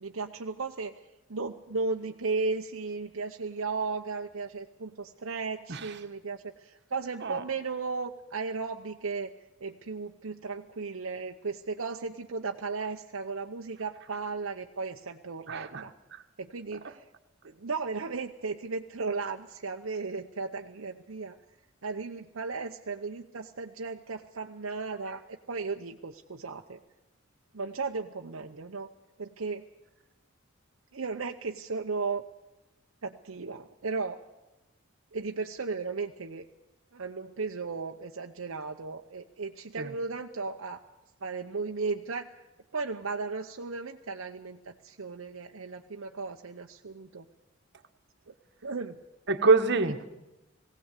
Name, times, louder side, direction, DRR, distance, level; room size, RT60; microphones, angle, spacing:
voice 1, 0.0-0.9 1.3-9.3 9.6-15.9 16.4-17.0 17.4-21.3 21.8-26.8 27.5-28.9 29.2-29.6 30.9-32.2 33.0-34.2 35.1-36.5 36.9-40.8 41.2-42.3 42.7-47.3 48.6-49.0, right 4 dB, 75° right, 3 dB, 0.8 m, -35 dB
voice 2, 15.5-15.8 39.8-39.9 49.3-50.1, right 3 dB, 55° right, 7 dB, 1.4 m, -25 dB
19.5 x 17.0 x 8.2 m, 0.99 s
head